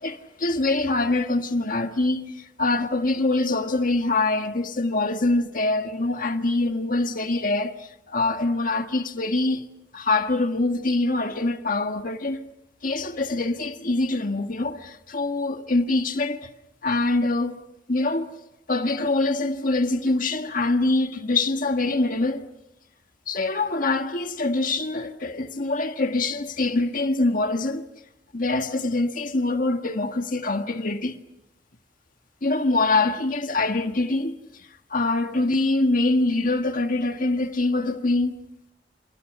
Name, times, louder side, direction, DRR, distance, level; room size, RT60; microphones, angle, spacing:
voice 1, 0.0-9.6 9.9-12.4 12.8-16.5 16.8-17.6 17.9-18.3 18.7-22.5 23.3-27.8 28.3-31.1 32.4-38.3, left 2 dB, 50° left, 1.6 m, -24 dB
29.5 x 28.5 x 5.4 m
head